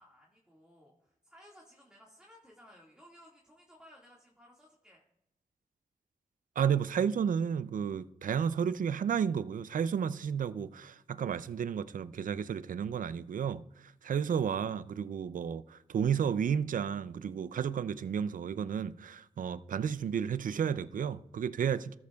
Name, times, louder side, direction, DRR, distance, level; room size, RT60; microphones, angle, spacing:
voice 1, 0.0-5.0, equal, 5° right, 1.9 m, -58 dB
voice 2, 6.6-13.6 14.0-22.0, right 7 dB, 65° right, 0.4 m, -32 dB
13.5 x 7.3 x 2.3 m
cardioid pair, 45°, 15 cm